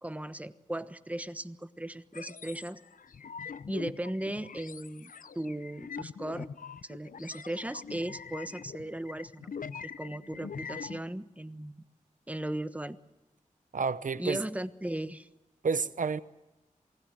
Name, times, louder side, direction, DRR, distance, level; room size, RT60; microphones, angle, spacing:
voice 1, 0.0-2.8 3.7-6.5 6.8-9.5 9.8-11.8 12.3-13.0 14.2-15.3, right 1 dB, 10° right, 1.2 m, -37 dB
sound 1, 2.1-11.0, left 6 dB, 75° left, 0.8 m, -43 dB
voice 2, 13.7-14.4 15.6-16.2, right 5 dB, 70° right, 1.0 m, -30 dB
28.0 x 19.5 x 7.7 m
cardioid pair, 50°, 14 cm